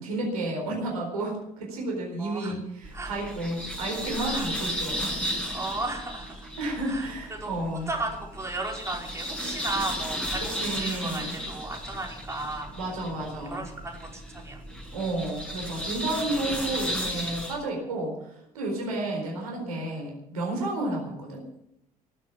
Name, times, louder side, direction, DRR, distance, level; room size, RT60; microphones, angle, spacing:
voice 1, 0.0-5.3 6.6-7.9 10.5-11.4 12.8-13.7 14.9-18.1 18.5-21.4, right 2 dB, 75° right, 0 dB, 4.3 m, -31 dB
voice 2, 2.2-2.5 2.9-3.1 4.3-4.5 5.5-6.5 6.9-7.1 7.4-7.5 7.9-10.5 10.8-12.7 13.2-14.6, right 2 dB, 15° right, -1 dB, 5.2 m, -35 dB
sound 1, 2.8-17.5, equal, 5° left, 6.9 m, -34 dB
18.5 x 9.5 x 7.2 m, 0.78 s
figure-of-eight pair, 55°, 19 cm